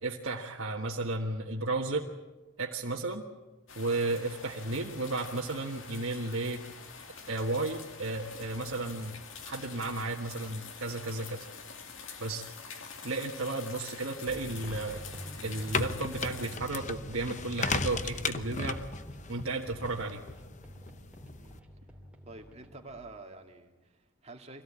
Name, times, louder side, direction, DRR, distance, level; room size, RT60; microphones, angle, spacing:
voice 1, 0.0-2.0 2.6-3.2 3.7-6.6 7.3-9.2 9.4-11.4 12.2-12.5 13.0-15.0 15.4-18.8 19.3-20.2, right 2 dB, 65° right, -1 dB, 1.6 m, -33 dB
sound 1, 3.7-16.6, left 5 dB, 60° left, 2.4 m, -46 dB
sound 2, 14.3-23.0, equal, 5° right, 3.1 m, -48 dB
sound 3, 15.4-21.6, left 4 dB, 35° left, 0.8 m, -36 dB
voice 2, 22.3-24.6, right 2 dB, 30° right, 3 dB, 2.3 m, -48 dB
25.0 x 17.0 x 8.7 m, 1.1 s
head